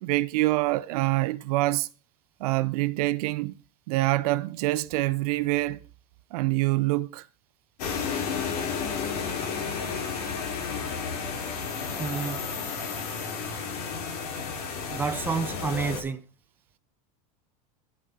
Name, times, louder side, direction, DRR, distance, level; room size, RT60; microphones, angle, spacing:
voice 1, 0.0-1.9 2.4-3.5 3.9-5.8 6.3-7.3, right 18 dB, 80° right, 0.6 m, -25 dB
sound 1, 7.8-16.0, left 6 dB, 90° left, 2.7 m, -32 dB
voice 2, 12.0-12.4 14.9-16.2, right 5 dB, 10° right, 0.9 m, -29 dB
10.0 x 7.4 x 4.1 m
supercardioid pair, 140°, 19 cm